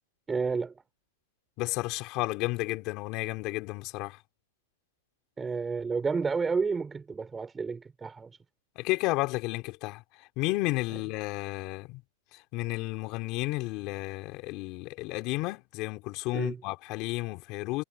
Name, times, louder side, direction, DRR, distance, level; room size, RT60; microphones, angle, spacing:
voice 1, 0.3-0.8 5.4-8.3 16.3-16.6, right 5 dB, 10° right, 4.5 m, -30 dB
voice 2, 1.6-4.2 8.7-12.0 12.3-17.8, left 21 dB, 40° left, 3.3 m, -32 dB
supercardioid pair, 155°, 0 cm